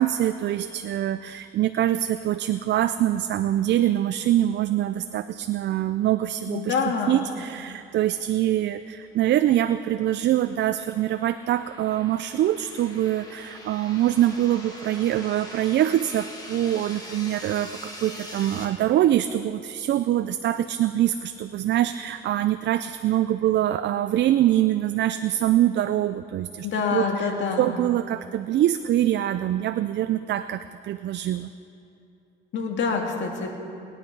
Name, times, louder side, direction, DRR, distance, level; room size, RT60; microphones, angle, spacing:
voice 1, 0.0-6.7 7.1-27.3 27.6-31.5, right 12 dB, 60° right, 11 dB, 0.4 m, -24 dB
voice 2, 6.5-7.2 26.6-27.8 32.5-33.6, left 5 dB, 70° left, 2 dB, 2.0 m, -26 dB
sound 1, 9.7-18.7, left 1 dB, 20° left, 2.3 m, -43 dB
20.5 x 9.8 x 4.6 m, 2.6 s
cardioid pair, 90°, 20 cm